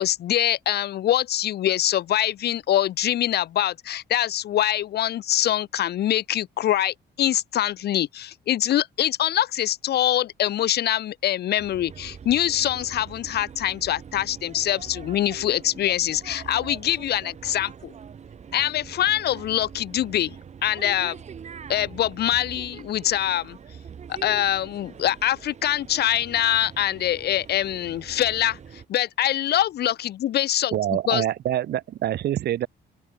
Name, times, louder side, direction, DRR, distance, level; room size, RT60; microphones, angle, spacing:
voice 1, 0.0-17.9 18.5-20.3 20.6-21.2 21.7-23.6 24.1-28.6 28.9-31.2, left 12 dB, 60° left, 1.2 m, -24 dB
sound 1, 11.6-28.9, right 7 dB, 40° right, 4.2 m, -43 dB
voice 2, 30.7-32.7, right 12 dB, 60° right, 1.4 m, -25 dB
cardioid pair, 145°, 19 cm